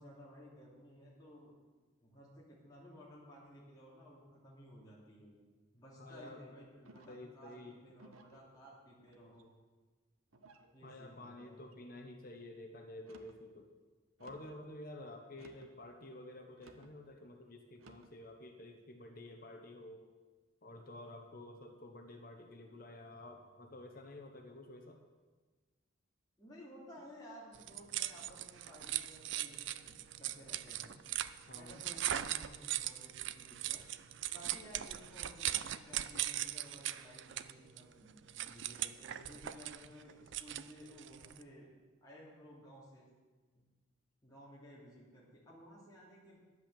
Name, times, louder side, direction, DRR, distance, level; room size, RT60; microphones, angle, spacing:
voice 1, 0.0-1.5 2.0-5.4 5.7-9.5 10.7-11.6 26.4-30.9 31.5-33.8 34.3-41.7 42.0-43.1 43.5-43.6 44.2-46.4, equal, 20° left, -6 dB, 2.7 m, -56 dB
voice 2, 6.0-6.4 7.1-7.7 10.8-13.7 14.2-20.0 20.6-25.0 31.5-31.9, left 1 dB, 45° left, 3 dB, 1.1 m, -51 dB
sound 1, 6.8-7.3 8.0-8.4 9.1-9.6 10.3-10.7 11.4-11.8 12.9-13.4 14.2-14.6 15.3-15.8 16.6-16.9 17.8-18.2, right 2 dB, 90° right, 1.0 m, -60 dB
sound 2, 27.5-41.4, right 12 dB, 60° right, 0.4 m, -40 dB
11.0 x 8.0 x 7.6 m, 1.3 s
head